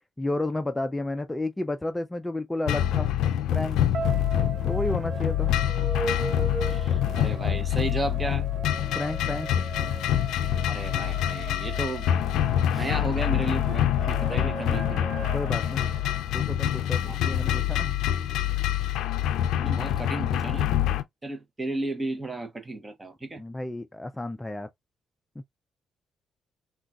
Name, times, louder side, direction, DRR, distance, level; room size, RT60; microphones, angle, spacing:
voice 1, 0.2-3.1 3.5-3.9 4.6-5.5 8.9-9.5 14.3-14.5 15.3-15.8 16.3-17.9 23.4-24.7, left 2 dB, 15° left, 0.3 m, -31 dB
sound 1, 2.7-21.0, left 11 dB, 85° left, 0.4 m, -26 dB
sound 2, 3.9-16.1, right 5 dB, 80° right, 1.0 m, -41 dB
sound 3, 4.0-16.2, right 2 dB, 55° right, 0.7 m, -40 dB
voice 2, 6.7-8.5 10.7-12.1 12.7-15.1 17.1-17.2 19.6-20.7 21.2-23.4, right 2 dB, 20° right, 0.7 m, -33 dB
3.7 x 2.3 x 2.3 m
cardioid pair, 90°, 0 cm